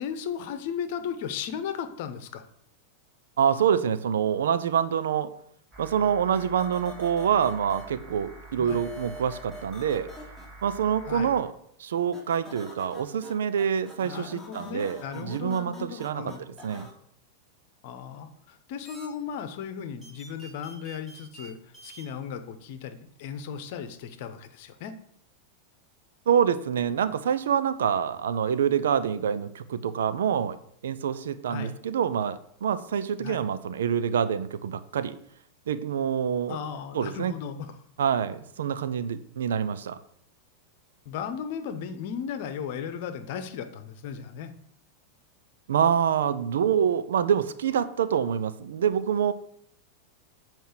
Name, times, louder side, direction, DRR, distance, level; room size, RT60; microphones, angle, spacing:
voice 1, 0.0-2.4 8.6-8.8 11.1-11.3 14.0-16.4 17.8-25.0 31.5-31.8 33.2-33.4 36.5-37.7 41.0-44.5, left 7 dB, 50° left, 10 dB, 0.9 m, -36 dB
voice 2, 3.4-5.3 5.8-10.1 10.6-11.5 11.8-16.3 16.6-16.9 26.3-30.6 30.8-35.2 35.7-36.6 36.9-37.4 38.0-40.0 45.7-49.3, right 8 dB, 60° right, 12 dB, 0.5 m, -26 dB
sound 1, 5.7-11.4, right 2 dB, 30° right, 3.1 m, -47 dB
sound 2, 6.3-7.8 8.7-10.5 12.1-13.3 13.6-16.9 18.8-19.1 20.0-21.5 21.7-22.0, left 1 dB, 10° right, 3.1 m, -44 dB
7.8 x 4.5 x 6.6 m, 0.67 s
figure-of-eight pair, 90°, 0 cm